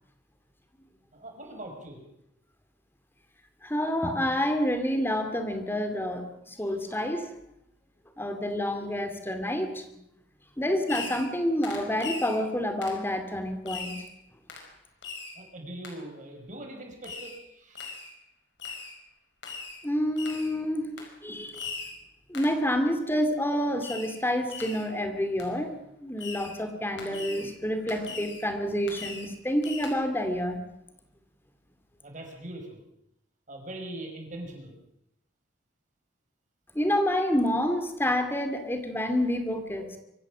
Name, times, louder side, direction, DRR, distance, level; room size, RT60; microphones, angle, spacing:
voice 1, 1.1-2.0 15.4-17.9 32.0-32.8 33.5-34.7, right 1 dB, 40° right, 2 dB, 5.7 m, -41 dB
voice 2, 3.6-7.3 8.2-10.0 10.6-13.9 19.8-21.7 22.3-25.7 26.0-30.6 36.7-40.0, equal, 10° left, 7 dB, 2.5 m, -28 dB
Fireworks, 10.9-11.4 11.6-12.4 12.8-13.0 13.7-14.1 14.5-14.7 15.0-15.4 15.8-16.0 17.0-17.4 17.8-18.1 18.6-19.0 19.4-19.8 20.2-20.5 21.0-21.1 21.5-22.0 22.3-22.6 23.8-24.2 24.5-24.9 25.4-25.5 26.2-26.6 27.0-27.5 27.9-28.5 28.9-29.3 29.6-29.9, left 4 dB, 65° left, 5.3 m, -40 dB
24.5 x 14.5 x 7.4 m, 0.81 s
head